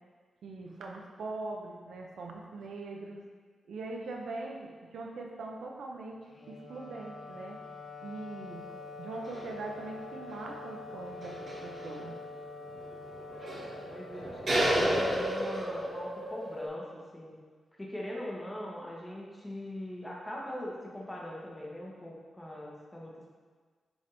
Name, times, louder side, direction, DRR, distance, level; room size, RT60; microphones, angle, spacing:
voice 1, 0.4-3.2 3.7-6.2 6.5-7.6 8.0-8.7 9.0-12.2, right 3 dB, 80° right, 0 dB, 0.8 m, -41 dB
Wind instrument woodwind instrument, 6.3-15.6, left 3 dB, 35° left, 0.7 m, -46 dB
sound 1, 8.6-8.7 9.2-9.6 9.9-10.0 10.4-10.5 11.1-11.9 12.7-12.8 13.1-16.7, right 1 dB, 40° right, 1.6 m, -32 dB
voice 2, 13.6-16.8 17.1-17.3 17.8-23.3, left 1 dB, 10° left, -4 dB, 1.1 m, -41 dB
9.8 x 3.6 x 4.0 m, 1.5 s
wide cardioid pair, 180°, 0 cm